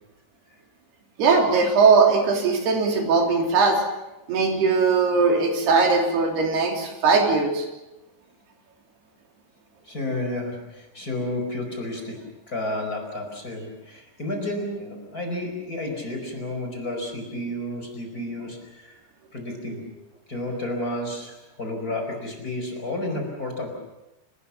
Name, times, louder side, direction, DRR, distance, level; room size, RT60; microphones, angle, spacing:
voice 1, 1.2-3.8 4.3-7.7, right 4 dB, 85° right, 2 dB, 5.4 m, -19 dB
voice 2, 9.9-12.2 12.5-19.0 19.3-19.9 20.3-23.7, left 1 dB, 20° left, 2 dB, 4.9 m, -31 dB
29.5 x 19.5 x 7.2 m, 0.98 s
omnidirectional pair, 4.5 m